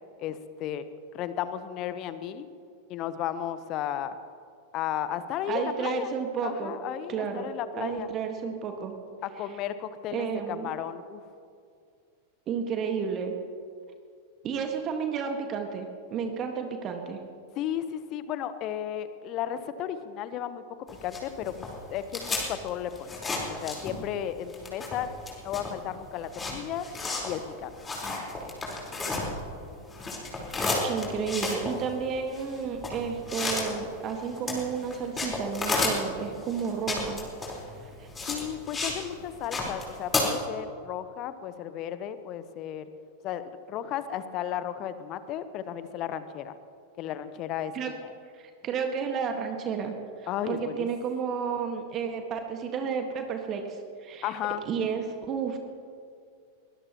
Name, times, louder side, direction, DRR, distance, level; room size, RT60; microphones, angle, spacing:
voice 1, 0.2-0.8 1.1-2.5 2.9-4.1 4.7-6.1 6.4-8.1 9.2-11.2 17.6-20.6 21.0-25.1 25.4-26.9 27.2-27.9 38.3-42.9 43.2-46.6 47.0-48.1 50.3-50.9 54.2-54.6, left 10 dB, 35° left, 13 dB, 0.9 m, -34 dB
voice 2, 5.5-6.7 7.1-7.5 7.8-8.9 10.1-10.7 12.5-13.3 14.4-17.2 30.5-37.2 37.7-38.1 47.7-47.9 48.3-49.9 50.2-54.3 54.7-55.6, right 6 dB, 30° right, 4 dB, 1.6 m, -32 dB
sound 1, 20.9-24.2 24.5-29.6 29.9-39.0 39.3-40.2, left 3 dB, 15° left, 4.2 m, -32 dB
22.5 x 20.0 x 3.0 m, 2.3 s
figure-of-eight pair, 90°, 0 cm